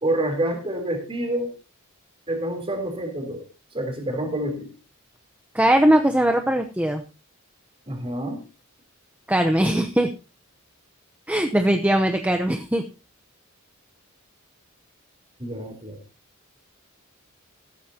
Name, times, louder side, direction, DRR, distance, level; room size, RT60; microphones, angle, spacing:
voice 1, 0.0-1.5 2.3-3.5 3.7-4.7 7.9-8.4 15.4-16.0, right 1 dB, 25° right, 4 dB, 3.5 m, -27 dB
voice 2, 5.5-7.0 9.3-10.1 11.3-12.8, right 1 dB, 5° right, 5 dB, 0.8 m, -20 dB
15.0 x 13.0 x 2.8 m, 0.32 s
head